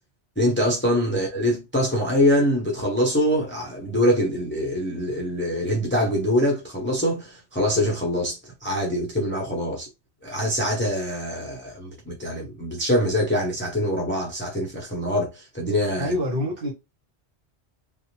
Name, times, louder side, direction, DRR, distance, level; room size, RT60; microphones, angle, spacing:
voice 1, 0.4-9.9 10.2-16.1, equal, 15° left, 0.6 m, -24 dB
voice 2, 16.0-16.7, left 1 dB, 55° right, 1.3 m, -26 dB
2.7 x 2.1 x 2.9 m
omnidirectional pair, 1.2 m